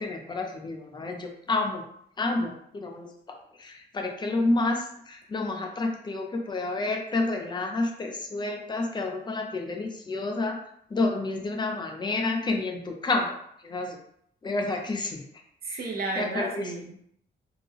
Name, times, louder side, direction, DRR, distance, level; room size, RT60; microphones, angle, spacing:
voice 1, 0.0-1.8 2.2-3.1 3.6-10.6 10.9-13.4 13.6-14.0 14.4-15.2 15.6-15.8 16.2-16.6, left 2 dB, 25° left, 3 dB, 0.4 m, -29 dB
voice 2, 15.6-17.0, right 2 dB, 50° right, 1 dB, 0.6 m, -33 dB
3.4 x 2.1 x 3.4 m, 0.70 s
wide cardioid pair, 165°, 19 cm